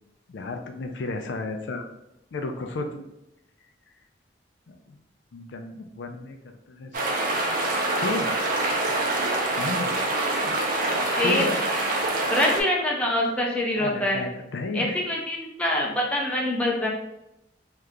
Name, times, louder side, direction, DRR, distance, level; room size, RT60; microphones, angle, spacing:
voice 1, 0.3-1.9 2.3-3.1 4.7-5.0 5.3-6.4 6.7-7.1 8.0-8.3 9.6-10.1 11.2-11.6 13.8-15.0, left 2 dB, 85° left, 5 dB, 0.4 m, -32 dB
sound 1, 6.9-12.6, right 2 dB, 50° right, 0.5 m, -25 dB
voice 2, 12.3-14.3 14.7-16.9, left 1 dB, 5° left, -2 dB, 0.5 m, -25 dB
2.8 x 2.4 x 3.3 m, 0.86 s
head